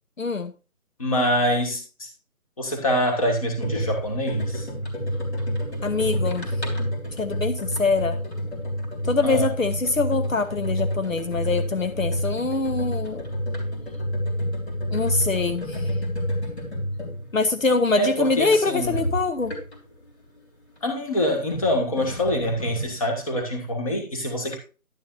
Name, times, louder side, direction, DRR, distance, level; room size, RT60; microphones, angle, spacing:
voice 1, 0.2-0.5 5.8-6.5 7.2-8.1 9.0-13.2 14.9-16.0 17.3-19.5, left 3 dB, 65° left, 1.0 m, -24 dB
voice 2, 1.0-2.1 2.6-4.7 9.2-9.5 18.0-19.1 20.8-24.6, equal, 25° left, 1.9 m, -25 dB
sound 1, 3.6-20.0 21.0-22.9, equal, 50° left, 3.3 m, -29 dB
11.0 x 9.4 x 2.6 m
figure-of-eight pair, 160°, 42 cm